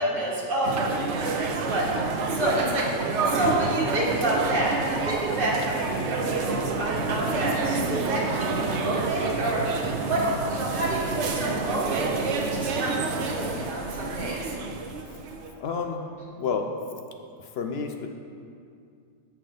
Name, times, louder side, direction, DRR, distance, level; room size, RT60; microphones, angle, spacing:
voice 1, 0.0-1.9 2.3-2.9 3.2-14.6, right 1 dB, 40° right, -6 dB, 1.5 m, -29 dB
sound 1, 0.6-15.5, right 3 dB, 65° right, 0.9 m, -28 dB
voice 2, 15.5-16.7 17.4-18.1, left 5 dB, 60° left, 5 dB, 0.7 m, -30 dB
7.2 x 5.8 x 5.0 m, 2.3 s
omnidirectional pair, 1.4 m